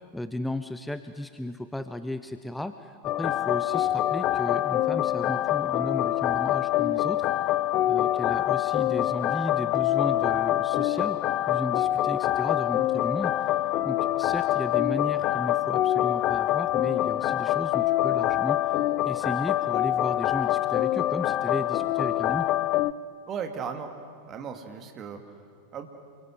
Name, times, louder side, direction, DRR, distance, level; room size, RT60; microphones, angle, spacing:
voice 1, 0.1-7.3 7.9-11.2 11.5-13.5 13.8-22.5, left 1 dB, 5° left, 10 dB, 0.8 m, -34 dB
sound 1, 3.0-22.9, left 13 dB, 35° left, 0.6 m, -25 dB
voice 2, 23.3-23.9 24.3-25.4 25.7-25.9, right 7 dB, 30° right, 6 dB, 2.5 m, -36 dB
29.0 x 24.0 x 7.9 m, 2.1 s
figure-of-eight pair, 90°, 0 cm